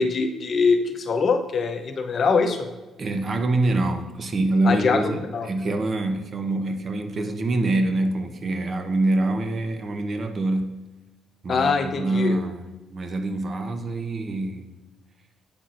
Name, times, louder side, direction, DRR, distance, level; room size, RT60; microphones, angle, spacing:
voice 1, 0.0-2.7 4.6-5.5 11.5-12.4, left 4 dB, 50° left, 6 dB, 0.7 m, -23 dB
voice 2, 3.0-5.2 5.4-10.7 11.4-14.7, right 2 dB, 45° right, 6 dB, 0.7 m, -25 dB
8.8 x 5.8 x 2.5 m, 1.1 s
cardioid pair, 90°, 0 cm